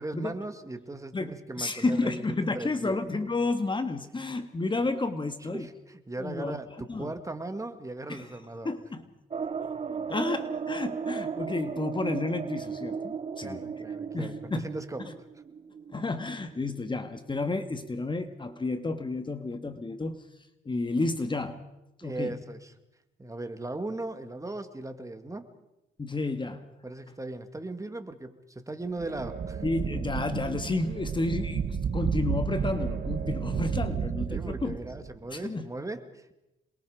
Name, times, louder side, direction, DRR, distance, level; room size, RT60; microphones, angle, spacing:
voice 1, 0.0-3.0 4.8-4.9 5.5-8.7 13.4-15.3 22.0-22.7 23.2-25.5 26.8-29.6 33.5-34.0 34.3-36.3, right 2 dB, 15° right, 8 dB, 2.2 m, -38 dB
voice 2, 1.6-5.7 6.2-6.6 6.9-7.1 8.1-8.3 8.7-9.0 10.1-13.6 14.1-14.7 15.9-20.2 20.7-21.7 22.0-22.4 26.0-26.6 29.6-34.8 35.3-35.7, left 3 dB, 25° left, 9 dB, 1.7 m, -31 dB
sound 1, 9.3-17.8 18.1-18.2 18.5-18.6, right 6 dB, 30° right, 1.0 m, -36 dB
sound 2, 29.0-35.1, right 7 dB, 50° right, 1.5 m, -32 dB
27.5 x 22.0 x 5.2 m, 0.91 s
cardioid pair, 90°, 20 cm